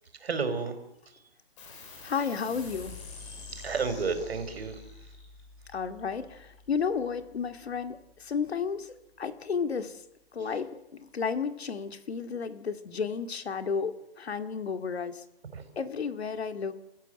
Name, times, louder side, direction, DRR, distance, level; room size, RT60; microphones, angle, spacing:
voice 1, 0.2-0.8 3.3-4.8 10.4-10.5 15.5-15.6, right 4 dB, 75° right, 9 dB, 5.0 m, -32 dB
sound 1, 1.6-8.5, left 4 dB, 30° left, 7.2 m, -48 dB
voice 2, 2.0-3.0 5.7-10.0 10.3-15.2 15.8-16.7, left 6 dB, 85° left, 9 dB, 2.4 m, -32 dB
30.0 x 15.0 x 8.0 m, 0.86 s
hypercardioid pair, 170°, 31 cm